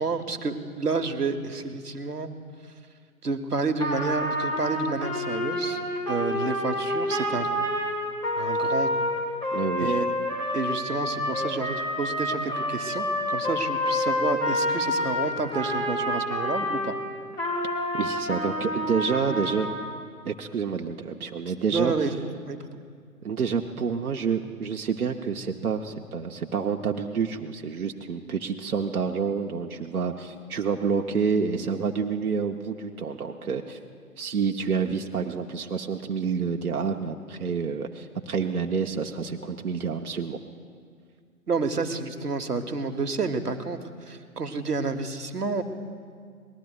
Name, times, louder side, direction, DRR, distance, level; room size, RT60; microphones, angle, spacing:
voice 1, 0.0-2.3 3.2-5.8 6.1-7.7 8.4-9.1 9.8-10.1 10.5-16.9 19.3-19.4 21.2-21.4 21.7-22.1 22.4-22.6 41.5-43.8 44.1-45.6, right 4 dB, 90° right, 8 dB, 1.1 m, -29 dB
Trumpet, 3.8-16.9 17.3-19.9, left 1 dB, 10° left, 1.5 m, -28 dB
voice 2, 9.5-9.9 17.9-19.7 20.2-21.9 23.2-33.8 34.2-40.4, right 6 dB, 70° right, 3 dB, 0.9 m, -28 dB
25.0 x 19.5 x 2.4 m, 2.1 s
figure-of-eight pair, 135°, 45 cm